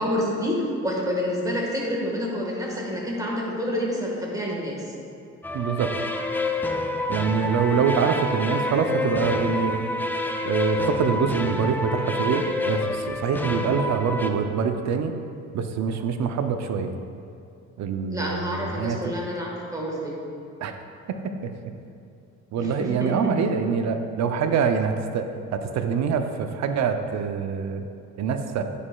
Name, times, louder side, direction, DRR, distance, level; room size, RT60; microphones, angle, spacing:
voice 1, 0.0-4.9 18.1-20.1 22.6-23.1, equal, 10° right, -3 dB, 1.4 m, -28 dB
sound 1, 5.4-14.3, left 2 dB, 5° left, 0.3 m, -28 dB
voice 2, 5.5-5.9 7.1-9.8 10.4-15.1 15.5-16.9 17.8-19.1 20.6-20.7 21.2-21.3 22.5-25.3 25.5-27.9 28.2-28.6, right 6 dB, 65° right, 7 dB, 0.5 m, -25 dB
9.7 x 4.9 x 2.3 m, 2.4 s
cardioid pair, 90°, 30 cm